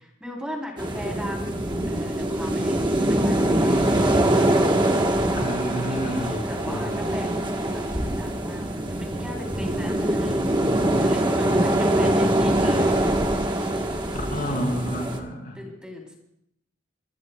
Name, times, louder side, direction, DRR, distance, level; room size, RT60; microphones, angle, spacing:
voice 1, 0.0-3.9 5.9-10.4 11.0-12.9 13.7-14.8 15.5-16.2, equal, 5° right, -1 dB, 3.2 m, -38 dB
sound 1, 0.8-15.2, right 1 dB, 25° right, 1.1 m, -23 dB
sound 2, 1.6-2.5 2.7-3.1 3.6-4.3 5.0-5.8 6.1-7.1 7.4-8.6 8.9-9.0 9.4-10.3 10.7-12.6, equal, 20° left, 4.1 m, -37 dB
voice 2, 5.3-7.1 14.1-15.6, equal, 45° left, 0 dB, 3.7 m, -30 dB
25.5 x 21.0 x 2.2 m, 0.77 s
head